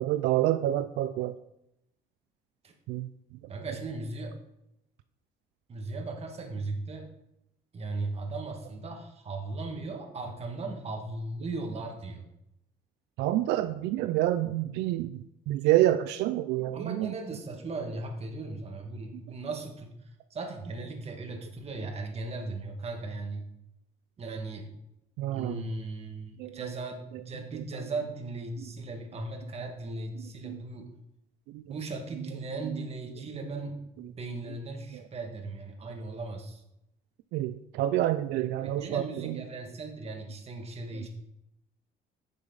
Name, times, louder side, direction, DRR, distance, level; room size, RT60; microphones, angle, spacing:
voice 1, 0.0-1.4 2.9-3.1 13.2-17.1 25.2-25.7 26.4-26.7 27.1-27.2 27.5-27.6 28.6-28.7 30.2-30.6 31.5-31.6 32.6-32.8 34.9-35.0 37.3-39.4 40.9-41.1, right 14 dB, 85° right, 10 dB, 0.5 m, -28 dB
voice 2, 3.5-4.4 5.7-7.1 7.7-12.3 16.7-19.9 20.3-23.5 24.2-24.7 25.3-30.9 31.6-36.6 38.6-41.1, right 3 dB, 35° right, 3 dB, 1.9 m, -37 dB
10.5 x 6.5 x 4.0 m, 0.83 s
cardioid pair, 110°, 17 cm